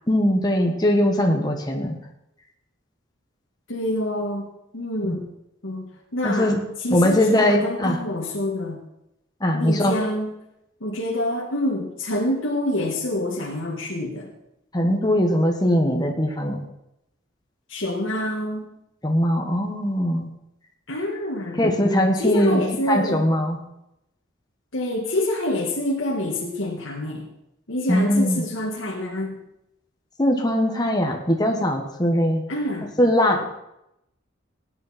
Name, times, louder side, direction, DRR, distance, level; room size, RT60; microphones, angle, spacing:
voice 1, 0.1-1.9 5.0-5.1 6.2-6.6 6.9-8.0 9.4-9.9 14.7-16.6 19.0-20.3 21.6-22.6 22.9-23.6 27.9-28.4 30.2-32.4 33.0-33.4, left 1 dB, 20° left, 2 dB, 1.5 m, -20 dB
voice 2, 3.7-4.5 4.7-5.3 5.6-6.5 6.8-8.8 9.5-10.3 10.8-14.3 17.7-18.7 20.9-21.6 22.2-23.3 24.7-27.3 27.7-29.4 32.5-32.9, left 1 dB, 85° left, -2 dB, 2.0 m, -26 dB
17.5 x 9.7 x 4.4 m, 0.84 s
head